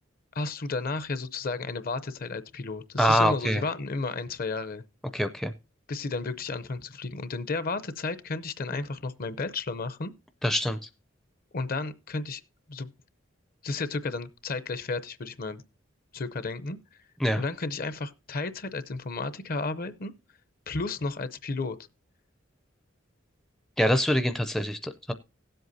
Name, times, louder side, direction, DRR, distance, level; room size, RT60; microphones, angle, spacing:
voice 1, 0.3-4.8 5.9-10.1 11.5-12.4 12.7-12.9 13.6-15.6 16.1-16.8 17.4-20.1 20.7-21.8, left 3 dB, 45° left, 0.6 m, -33 dB
voice 2, 3.0-3.6 5.1-5.5 10.4-10.8 17.2-17.4 23.8-25.1, equal, ahead, 0.4 m, -24 dB
17.5 x 7.8 x 2.7 m
head